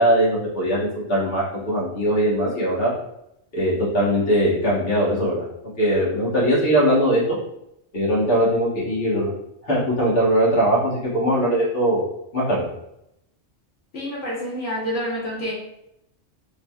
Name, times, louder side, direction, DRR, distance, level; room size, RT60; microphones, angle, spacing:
voice 1, 0.0-2.9 3.5-5.5 5.8-7.4 7.9-9.3 9.6-12.0 12.3-12.7, equal, 55° left, -7 dB, 1.5 m, -20 dB
voice 2, 13.9-15.5, equal, 85° left, -6 dB, 1.4 m, -28 dB
3.5 x 3.1 x 2.3 m, 0.80 s
omnidirectional pair, 1.2 m